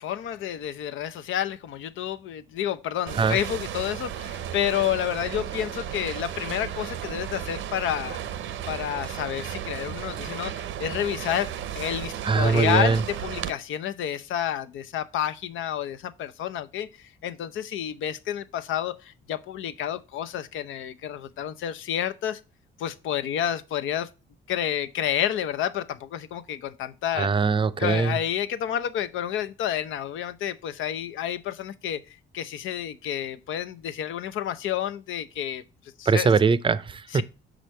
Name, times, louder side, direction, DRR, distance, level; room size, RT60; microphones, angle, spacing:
voice 1, 0.0-8.2 8.7-22.4 22.8-24.1 24.5-27.3 27.8-32.0 32.3-35.6 36.0-36.3 37.1-37.2, left 10 dB, 80° left, 0.7 m, -30 dB
sound 1, 3.1-13.5, right 10 dB, 80° right, 0.8 m, -34 dB
voice 2, 12.2-13.0 27.2-28.2 36.1-37.2, right 5 dB, 25° right, 0.5 m, -22 dB
6.4 x 5.0 x 4.4 m
cardioid pair, 90°, 20 cm